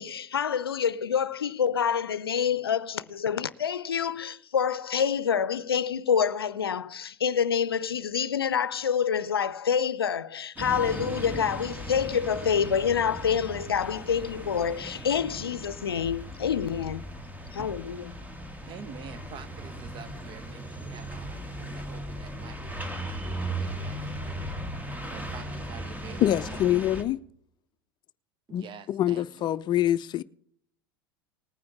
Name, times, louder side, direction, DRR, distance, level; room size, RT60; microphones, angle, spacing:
voice 1, 0.0-17.0 17.5-18.1, left 7 dB, 85° left, 0.5 m, -27 dB
sound 1, 10.6-27.0, right 1 dB, 15° right, 1.9 m, -37 dB
voice 2, 18.7-24.5 25.0-26.7 28.5-29.5, right 6 dB, 40° right, 1.1 m, -48 dB
voice 3, 26.2-27.2 28.5-30.2, left 12 dB, 40° left, 0.5 m, -25 dB
19.5 x 9.6 x 3.5 m
hypercardioid pair, 80°, 12 cm